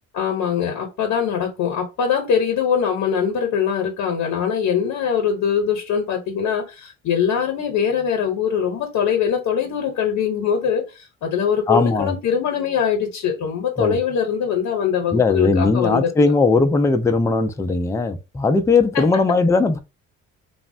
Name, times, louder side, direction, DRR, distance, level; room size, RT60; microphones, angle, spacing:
voice 1, 0.1-16.3 18.9-19.0, left 7 dB, 75° left, 0.7 m, -22 dB
voice 2, 11.7-12.2 13.8-14.0 15.1-19.8, left 3 dB, 10° left, 0.3 m, -18 dB
3.3 x 2.0 x 2.5 m
cardioid pair, 90°, 30 cm